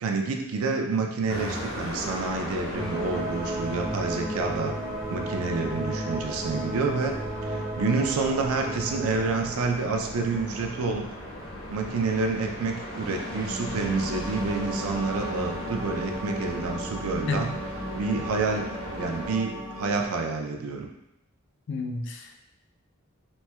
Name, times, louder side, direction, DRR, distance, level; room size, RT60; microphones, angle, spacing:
voice 1, 0.0-4.7 5.1-7.2 7.4-11.1 11.7-17.5 18.0-18.7 18.9-20.9, right 4 dB, 85° right, 3 dB, 0.4 m, -28 dB
sound 1, 1.3-19.3, left 1 dB, 75° left, 0.9 m, -39 dB
sound 2, 2.7-11.7 12.9-20.1, right 1 dB, 10° right, 0.5 m, -35 dB
voice 2, 17.3-17.6 21.7-22.4, left 3 dB, 55° left, 3 dB, 0.4 m, -31 dB
4.1 x 2.0 x 2.2 m, 0.84 s
head